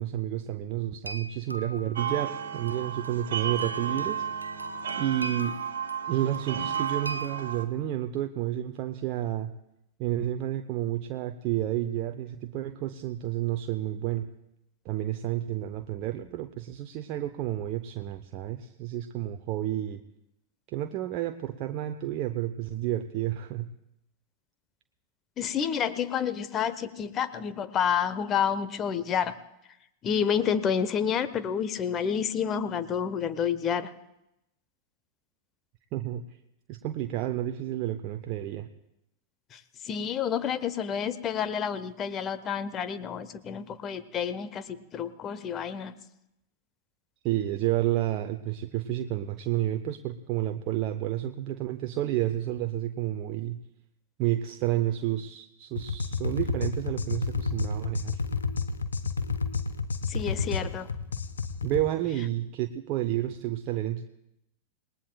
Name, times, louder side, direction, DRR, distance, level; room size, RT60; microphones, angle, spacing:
voice 1, 0.0-4.2 5.0-5.6 6.1-9.5 10.0-14.3 14.8-20.0 20.7-23.7 35.9-36.2 36.7-38.7 47.2-53.6 54.2-58.2 61.6-64.1, right 13 dB, 40° right, 7 dB, 0.6 m, -30 dB
sound 1, 1.1-7.5, right 1 dB, 85° right, 0.6 m, -42 dB
sound 2, 2.0-7.6, right 8 dB, 60° right, 1.4 m, -33 dB
voice 2, 25.4-29.3 30.0-33.9 39.5-45.9 60.1-60.9, left 8 dB, 30° left, 13 dB, 0.9 m, -29 dB
sound 3, 55.8-61.9, left 4 dB, 70° left, 0.8 m, -31 dB
27.5 x 19.5 x 2.3 m, 0.85 s
figure-of-eight pair, 90°, 0 cm